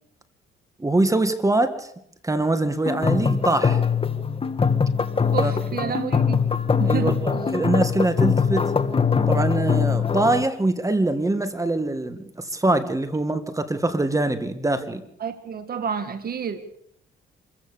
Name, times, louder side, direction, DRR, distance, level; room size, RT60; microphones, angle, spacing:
voice 1, 0.8-1.9 2.2-3.8 5.4-5.5 5.8-5.9 6.9-8.7 9.3-15.0, right 2 dB, 15° right, 10 dB, 1.9 m, -23 dB
sound 1, 2.9-10.4, left 6 dB, 30° left, 1.5 m, -22 dB
voice 2, 5.3-6.4 6.8-7.5 15.2-16.6, right 7 dB, 50° right, 8 dB, 1.8 m, -30 dB
26.5 x 15.0 x 7.0 m, 0.73 s
cardioid pair, 90°, 20 cm